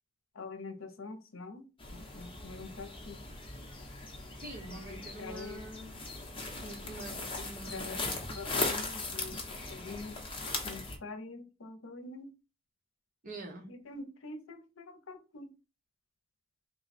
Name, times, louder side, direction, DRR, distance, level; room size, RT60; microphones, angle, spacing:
voice 1, 0.3-3.2 4.6-5.6 7.4-7.5 7.7-8.0 8.3-9.3 9.7-10.2 10.6-12.3 13.7-15.5, left 3 dB, 80° left, 0.7 m, -45 dB
sound 1, 1.8-11.0, left 3 dB, 25° left, 0.9 m, -39 dB
voice 2, 4.4-5.9 6.6-8.2 13.2-13.7, right 2 dB, 45° right, 1.1 m, -46 dB
3.7 x 2.3 x 4.1 m
head